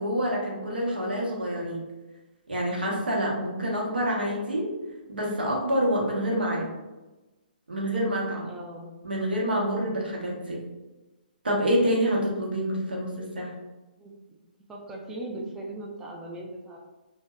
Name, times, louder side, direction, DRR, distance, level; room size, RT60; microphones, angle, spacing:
voice 1, 0.0-1.8 2.5-4.7 5.1-6.7 7.7-8.5 9.0-10.6 11.4-13.5, equal, 85° right, -2 dB, 0.8 m, -27 dB
voice 2, 3.3-3.6 8.5-8.9 9.8-10.1 14.0-14.4 14.7-16.8, right 1 dB, 10° right, -2 dB, 0.3 m, -40 dB
2.6 x 2.1 x 2.2 m, 1.1 s
hypercardioid pair, 135°, 5 cm